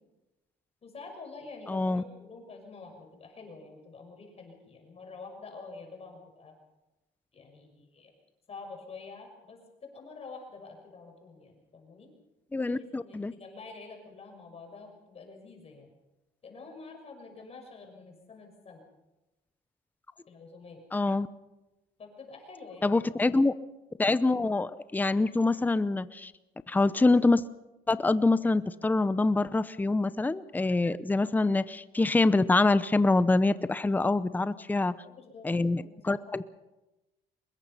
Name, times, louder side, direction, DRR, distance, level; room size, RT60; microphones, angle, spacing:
voice 1, 0.8-6.5 7.3-8.1 8.5-12.1 12.7-15.9 16.4-18.8 20.3-20.8 22.0-23.4 34.6-36.4, left 4 dB, 35° left, 3 dB, 6.2 m, -48 dB
voice 2, 1.7-2.0 12.5-13.3 20.9-21.3 22.8-23.5 24.0-26.3 26.7-27.4 27.9-34.9 35.4-36.4, left 3 dB, 10° left, 15 dB, 0.7 m, -25 dB
23.5 x 21.0 x 5.7 m, 1.0 s
cardioid pair, 110°, 17 cm